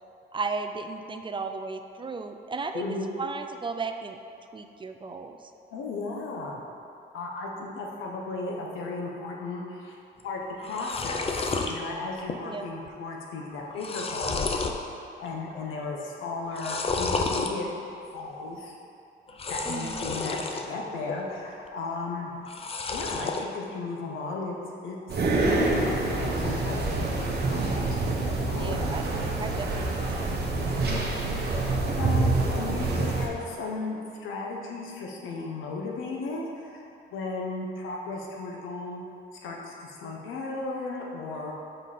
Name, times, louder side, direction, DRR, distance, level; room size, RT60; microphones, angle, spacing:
voice 1, 0.3-4.2 4.5-5.5 12.4-12.7 19.7-20.1 28.5-30.4, right 4 dB, 25° right, 6 dB, 0.3 m, -35 dB
voice 2, 2.7-3.1 5.7-6.6 7.1-10.0 10.2-14.7 15.2-17.7 18.1-18.7 19.5-22.3 22.9-24.5 24.8-25.0 25.4-28.9 30.7-39.0 39.4-41.5, left 3 dB, 85° left, -1 dB, 1.0 m, -35 dB
sound 1, 10.2-10.3 10.5-11.7 12.2-12.6 12.9-13.0 13.5-14.8 15.3-15.7 16.5-17.5 19.3-20.7 21.1-21.7 22.4-23.5, left 4 dB, 30° left, 0.5 m, -31 dB
sound 2, 25.1-33.3, right 2 dB, 55° right, 1.1 m, -26 dB
5.4 x 5.2 x 4.2 m, 2.6 s
cardioid pair, 90°, 20 cm